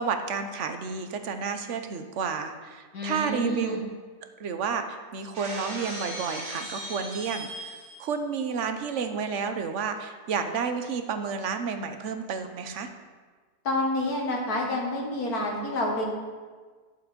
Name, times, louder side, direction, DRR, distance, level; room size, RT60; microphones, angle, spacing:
voice 1, 0.0-3.8 4.4-12.9, right 5 dB, 60° right, 7 dB, 1.1 m, -31 dB
voice 2, 2.9-3.8 13.6-16.1, left 1 dB, 90° left, -1 dB, 2.3 m, -28 dB
Shatter, 5.3-8.1, right 1 dB, 75° right, 2.4 m, -38 dB
11.5 x 7.0 x 5.2 m, 1.5 s
omnidirectional pair, 1.6 m